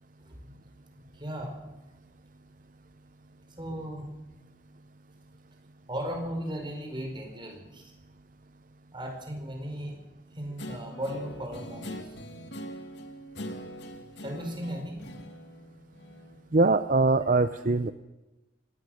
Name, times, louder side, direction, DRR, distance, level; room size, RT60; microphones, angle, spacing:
voice 1, 0.9-1.6 3.6-4.0 5.9-7.9 8.9-10.0 10.3-12.1 14.2-15.0, equal, 25° right, 3 dB, 4.9 m, -36 dB
Guitar, 10.6-16.4, equal, 80° left, 2.6 m, -42 dB
voice 2, 16.5-17.9, right 3 dB, 50° right, 11 dB, 0.7 m, -22 dB
24.5 x 19.0 x 6.5 m, 1.1 s
head